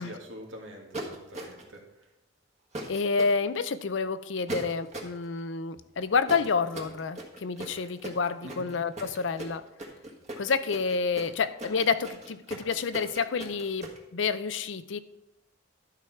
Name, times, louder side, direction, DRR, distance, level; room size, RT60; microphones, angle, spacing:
voice 1, 0.0-2.1 8.4-8.7, equal, 85° right, 1 dB, 1.9 m, -45 dB
sound 1, 0.9-1.8 2.7-3.3 4.5-5.2 6.3-14.0, right 1 dB, 35° right, 1.5 m, -38 dB
voice 2, 2.9-9.6 10.4-15.0, left 5 dB, 75° left, 13 dB, 0.5 m, -29 dB
11.5 x 4.7 x 5.8 m, 0.88 s
head